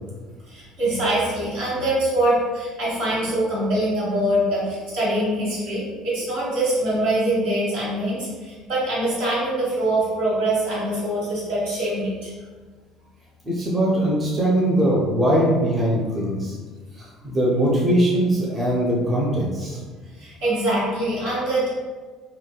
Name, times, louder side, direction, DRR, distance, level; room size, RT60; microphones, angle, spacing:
voice 1, 0.5-12.3 20.2-21.7, right 1 dB, 75° right, -9 dB, 1.3 m, -23 dB
voice 2, 13.4-16.6 17.0-19.8, right 1 dB, 25° right, -5 dB, 0.6 m, -21 dB
3.1 x 2.2 x 2.2 m, 1.4 s
figure-of-eight pair, 60°, 0 cm